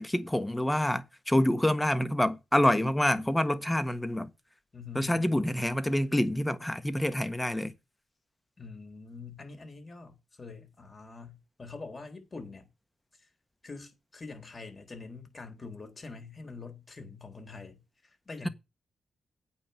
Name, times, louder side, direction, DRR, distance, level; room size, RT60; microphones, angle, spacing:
voice 1, 0.0-4.3 4.9-7.7, left 1 dB, 10° left, 1.4 m, -27 dB
voice 2, 4.7-5.4 8.6-12.7 13.1-13.3 13.6-18.5, left 4 dB, 35° left, 3.9 m, -45 dB
8.7 x 5.3 x 7.8 m
cardioid pair, 70°, 0 cm